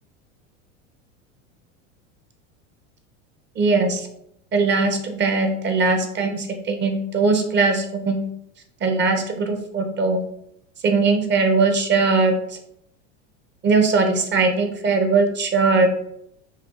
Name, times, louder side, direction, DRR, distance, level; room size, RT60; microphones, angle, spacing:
voice 1, 3.6-4.1 4.5-8.3 8.8-10.2 10.8-12.3 13.6-15.9, right 3 dB, 30° right, 5 dB, 0.7 m, -20 dB
6.0 x 2.3 x 2.3 m, 0.73 s
hypercardioid pair, 95°, 37 cm